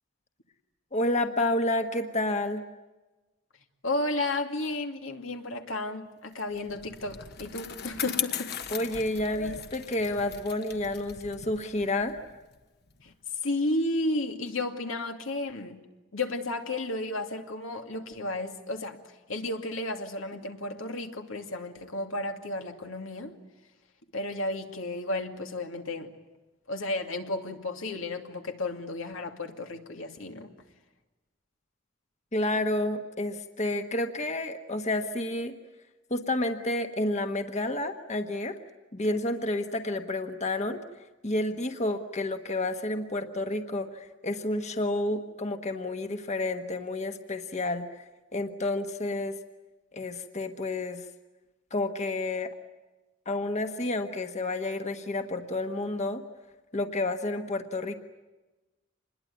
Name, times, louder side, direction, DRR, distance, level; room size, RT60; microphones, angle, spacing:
voice 1, 0.9-2.6 8.7-12.2 32.3-35.5 36.1-38.6 38.9-40.8 41.2-48.0 48.3-49.4 49.9-51.0 51.7-52.5 53.2-56.2 56.7-57.9, left 2 dB, 35° left, 6 dB, 1.3 m, -30 dB
voice 2, 3.8-8.6 13.0-13.1 13.4-15.8 16.1-19.0 19.3-23.4 24.1-26.1 26.7-30.5, left 2 dB, 85° left, 4 dB, 2.5 m, -33 dB
Bicycle, 6.4-13.1, left 8 dB, 55° left, 1.3 m, -38 dB
26.5 x 21.5 x 9.5 m, 1.1 s
head